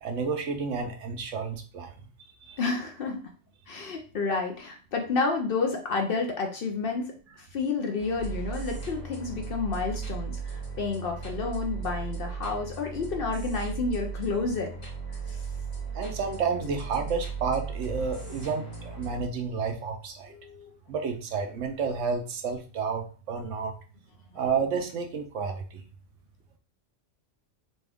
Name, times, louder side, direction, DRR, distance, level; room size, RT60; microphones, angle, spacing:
voice 1, 0.0-2.1 2.4-2.6 15.9-20.3 20.9-23.7 24.3-25.8, right 5 dB, 75° right, 5 dB, 1.0 m, -31 dB
voice 2, 2.6-3.2 3.7-14.7 15.3-15.4 20.3-20.7, left 4 dB, 55° left, 3 dB, 0.7 m, -30 dB
sound 1, 8.0-19.2, right 5 dB, 90° left, 1.9 m, -36 dB
4.2 x 2.3 x 3.5 m, 0.39 s
omnidirectional pair, 1.3 m